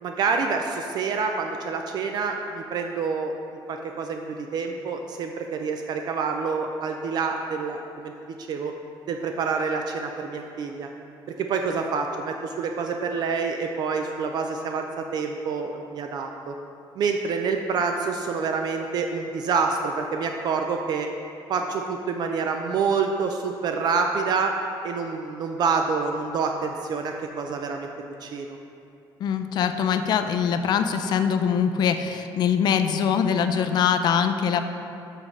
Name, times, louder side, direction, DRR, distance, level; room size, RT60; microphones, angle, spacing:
voice 1, 0.0-3.3 3.7-8.1 8.4-8.7 9.1-10.9 11.4-16.5 17.0-21.1 21.5-24.5 24.8-27.9 28.2-28.6, right 5 dB, 50° right, 3 dB, 0.3 m, -27 dB
voice 2, 29.2-34.6, left 7 dB, 50° left, 8 dB, 0.4 m, -23 dB
7.3 x 5.0 x 3.1 m, 2.6 s
cardioid pair, 160°, 9 cm